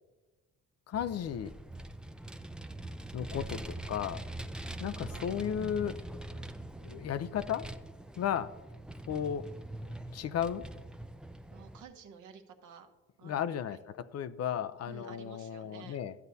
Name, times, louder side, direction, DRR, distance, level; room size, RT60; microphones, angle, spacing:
voice 1, 0.9-1.5 3.1-4.2 4.8-6.0 6.8-7.7 8.2-8.6 9.1-9.5 10.1-10.7 13.2-16.2, left 9 dB, 55° left, 14 dB, 0.5 m, -34 dB
Vehicle, 0.9-11.8, right 1 dB, 5° right, 0.4 m, -43 dB
voice 2, 11.5-12.9 13.2-13.4 13.7-13.8 14.9-16.1, right 6 dB, 75° right, 5 dB, 1.1 m, -51 dB
13.0 x 7.8 x 2.7 m, 1.2 s
cardioid pair, 90°, 30 cm